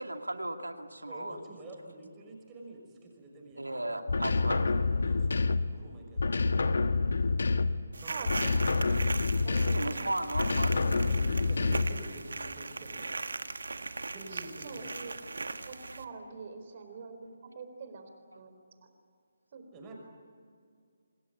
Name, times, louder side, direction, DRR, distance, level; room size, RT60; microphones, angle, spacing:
voice 1, 0.0-1.4 3.6-4.7 9.7-10.7 15.9-16.0, right 1 dB, 90° right, 6 dB, 2.3 m, -35 dB
voice 2, 1.1-2.8 3.2-4.7 5.0-6.4 7.9-8.4 10.7-13.1 14.1-15.1 19.7-19.9, right 1 dB, 20° right, 1 dB, 5.9 m, -47 dB
sound 1, 4.1-5.8 6.2-7.9 8.3-10.0 10.3-12.1, left 3 dB, 65° left, 1.4 m, -28 dB
sound 2, 7.9-16.0, right 3 dB, 70° right, 1.5 m, -39 dB
voice 3, 8.1-8.8 9.4-10.1 14.3-15.1 15.7-17.3 17.5-18.1 18.4-18.5 19.5-19.7, right 4 dB, 40° right, 7 dB, 4.2 m, -44 dB
27.5 x 20.0 x 8.6 m, 2.2 s
figure-of-eight pair, 145°, 0 cm